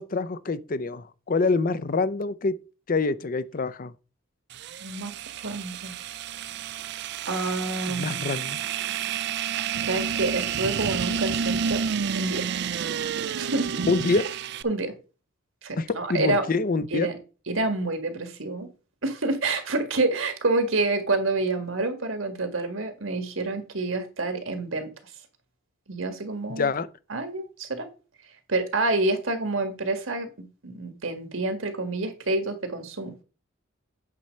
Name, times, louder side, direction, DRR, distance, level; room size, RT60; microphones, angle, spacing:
voice 1, 0.0-2.5 2.9-3.9 8.0-8.6 13.9-14.2 15.8-17.1 26.6-26.9, left 3 dB, 45° left, 0.6 m, -26 dB
sound 1, 4.5-14.6, right 7 dB, 55° right, 0.4 m, -30 dB
voice 2, 4.8-6.0 7.3-8.2 9.5-11.9 12.1-12.5 13.3-13.7 14.1-14.2 14.6-15.0 15.6-16.5 16.9-17.2 17.5-18.7 19.0-25.2 25.9-26.7 27.1-27.9 28.2-33.2, right 2 dB, 75° right, 1.8 m, -28 dB
8.5 x 4.3 x 6.5 m
head